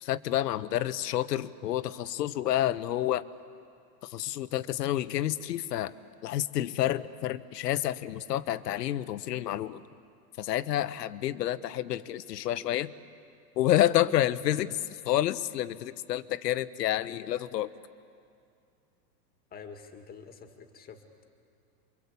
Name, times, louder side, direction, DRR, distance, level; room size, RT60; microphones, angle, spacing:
voice 1, 0.0-3.2 4.0-5.9 6.2-9.8 10.4-12.9 13.6-14.8 15.0-17.7, left 13 dB, 80° left, 15 dB, 1.2 m, -29 dB
voice 2, 19.5-21.0, left 6 dB, 20° left, 6 dB, 2.1 m, -47 dB
28.5 x 24.5 x 8.4 m, 2.4 s
supercardioid pair, 145°, 48 cm